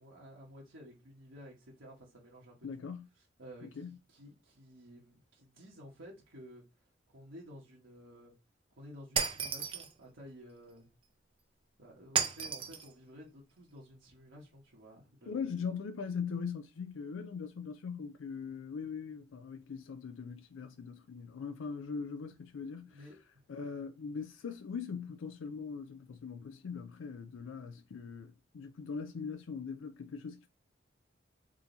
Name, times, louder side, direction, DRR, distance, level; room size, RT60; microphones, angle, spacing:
voice 1, 0.0-2.9 3.4-6.6 7.1-8.3 8.7-10.9 11.8-15.4 22.8-23.5, equal, 80° right, 1.3 m, -53 dB
voice 2, 2.6-3.1 3.6-4.0 15.3-23.1 23.5-30.5, left 5 dB, 90° left, 0.4 m, -41 dB
Shatter, 9.2-9.9 12.2-12.9, right 6 dB, 30° right, 0.5 m, -33 dB
3.7 x 2.8 x 3.9 m
head